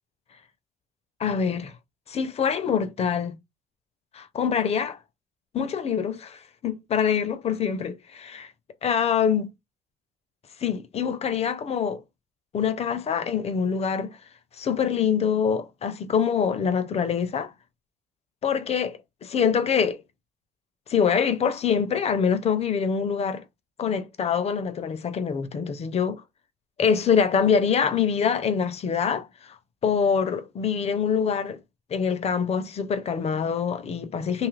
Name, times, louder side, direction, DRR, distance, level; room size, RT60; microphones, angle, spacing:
voice 1, 1.2-1.7 2.1-3.4 4.1-5.0 5.5-8.5 8.8-9.5 10.6-12.0 12.5-14.2 14.6-17.5 18.4-20.0 20.9-23.4 23.8-26.2 26.8-29.6 29.8-31.6 31.9-34.5, left 7 dB, 40° left, 0.5 m, -25 dB
2.7 x 2.4 x 3.1 m
cardioid pair, 110°, 17 cm